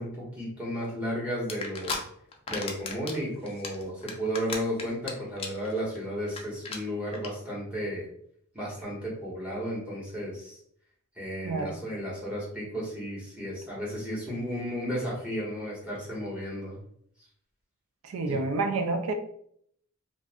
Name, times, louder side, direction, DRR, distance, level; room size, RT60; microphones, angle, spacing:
voice 1, 0.0-2.0 2.5-8.1 8.5-10.6 11.1-16.8 18.3-18.4, equal, 5° right, -6 dB, 1.1 m, -33 dB
sound 1, 1.5-2.0 2.3-3.2 3.5-5.1 5.4-5.7 5.9-6.0 6.3-6.4 6.6-6.8 7.1-7.3, left 4 dB, 25° left, 0.4 m, -34 dB
voice 2, 11.4-11.8 18.0-19.1, right 3 dB, 70° right, 6 dB, 0.4 m, -29 dB
2.5 x 2.5 x 3.4 m, 0.67 s
head